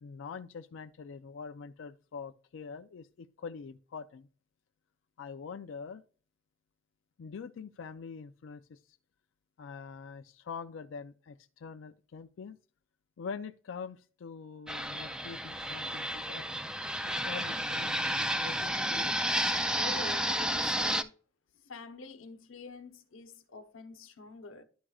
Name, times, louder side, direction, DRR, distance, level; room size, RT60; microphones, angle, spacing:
voice 1, 0.0-4.3 5.2-6.0 7.2-9.0 9.6-12.6 13.2-16.5 17.0-18.0 18.4-19.2, left 5 dB, 70° left, 0.4 m, -44 dB
Fixed-wing aircraft airplane, 14.7-21.0, equal, 5° right, 0.3 m, -31 dB
voice 2, 19.7-21.2 21.6-24.6, left 3 dB, 85° left, 0.9 m, -46 dB
11.0 x 4.9 x 2.3 m
head